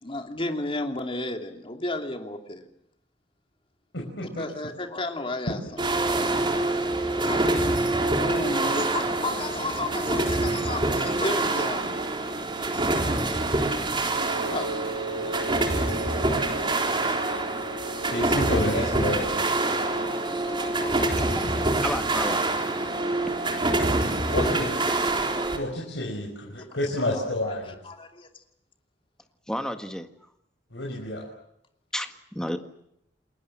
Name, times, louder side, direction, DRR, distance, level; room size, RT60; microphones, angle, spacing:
voice 1, 0.0-2.7 4.4-5.6 6.8-7.8 8.1-11.9 14.4-14.7 15.3-15.9 20.5-21.4 27.4-27.5 27.8-28.4, left 2 dB, 30° left, 5 dB, 2.8 m, -33 dB
voice 2, 3.9-4.4 18.1-19.4 24.3-24.8 25.5-27.8 30.7-31.3, left 1 dB, 80° left, -1 dB, 5.6 m, -29 dB
sound 1, 5.8-25.6, right 2 dB, 30° right, 3.9 m, -26 dB
Wind instrument woodwind instrument, 14.1-21.5, right 3 dB, 80° right, 5.6 m, -36 dB
voice 3, 21.2-22.5 29.5-30.1 31.9-32.6, equal, 5° left, 7 dB, 1.8 m, -32 dB
29.5 x 21.0 x 7.6 m, 0.77 s
head